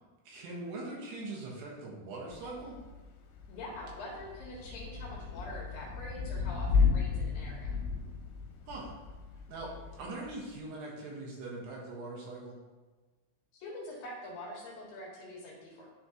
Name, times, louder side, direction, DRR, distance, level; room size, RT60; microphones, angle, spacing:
voice 1, 0.2-2.8 8.7-8.9 9.5-12.6, right 2 dB, 70° right, -3 dB, 3.2 m, -42 dB
Thunder / Rain, 2.3-10.6, left 5 dB, 90° left, 3.2 m, -34 dB
voice 2, 3.5-7.8 13.5-15.9, left 1 dB, 65° left, -3 dB, 2.5 m, -44 dB
11.0 x 4.2 x 3.0 m, 1.3 s
omnidirectional pair, 5.5 m